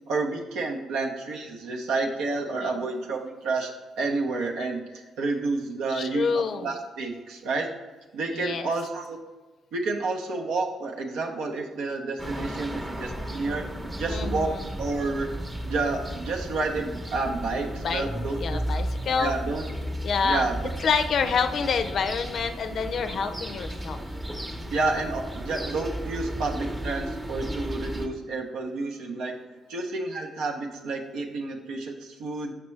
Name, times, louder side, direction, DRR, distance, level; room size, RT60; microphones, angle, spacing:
voice 1, 0.1-4.8 5.2-7.7 8.1-9.2 9.7-13.7 14.0-14.5 14.8-15.3 15.6-18.6 19.2-19.6 20.2-20.7 24.7-29.3 29.7-32.5, right 3 dB, 85° right, 0 dB, 0.7 m, -30 dB
voice 2, 5.9-6.7 8.3-8.7 14.1-14.7 17.8-18.1 18.4-19.4 20.0-20.5 20.8-24.0, left 5 dB, 60° left, 8 dB, 0.4 m, -27 dB
sound 1, 12.2-28.1, equal, 15° right, 0.8 m, -34 dB
6.0 x 5.8 x 3.2 m, 1.2 s
cardioid pair, 90°, 0 cm